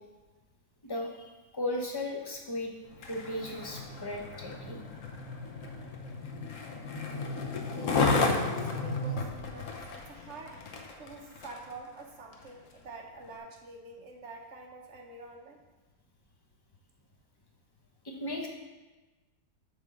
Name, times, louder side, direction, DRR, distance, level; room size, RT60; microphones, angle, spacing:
voice 1, 0.9-2.7 3.1-4.8 18.0-18.5, left 1 dB, 25° left, 0 dB, 0.5 m, -36 dB
Skateboard, 2.9-11.7 12.3-12.5, left 3 dB, 55° left, 1.0 m, -33 dB
voice 2, 7.7-10.6 11.0-15.6, right 3 dB, 50° right, 2 dB, 0.9 m, -47 dB
8.1 x 3.7 x 6.8 m, 1.2 s
omnidirectional pair, 2.0 m